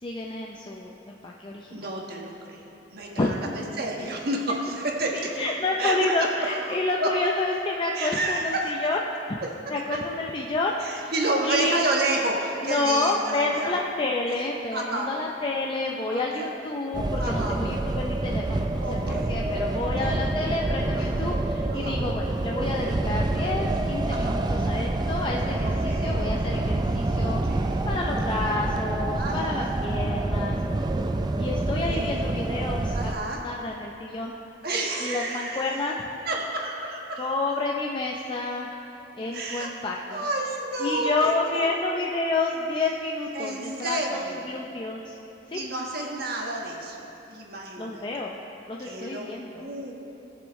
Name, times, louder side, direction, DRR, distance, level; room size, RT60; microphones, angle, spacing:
voice 1, 0.0-1.9 3.2-3.5 4.0-4.1 5.1-9.0 9.3-11.1 11.4-11.8 12.6-27.4 27.8-30.6 31.4-34.3 35.0-36.0 37.2-38.7 39.2-40.2 40.8-45.2 45.5-45.6 47.8-48.4 48.7-49.7, left 2 dB, 25° left, -1 dB, 0.5 m, -29 dB
voice 2, 1.7-7.1 7.9-8.7 9.9-10.0 10.8-13.8 14.7-15.1 16.1-16.5 17.1-17.6 18.8-19.4 19.8-20.3 20.9-21.2 21.7-22.0 24.1-24.4 25.6-26.2 27.2-27.9 29.1-29.6 31.8-32.2 32.9-33.4 34.6-35.7 36.3-37.3 39.3-39.7 40.1-41.7 43.3-44.5 45.5-47.0 47.3-48.1 48.8-49.3 49.5-49.9, right 2 dB, 55° right, -1 dB, 1.4 m, -30 dB
sound 1, 16.9-33.1, right 2 dB, 25° right, 0.4 m, -27 dB
19.5 x 7.0 x 3.1 m, 3.0 s
head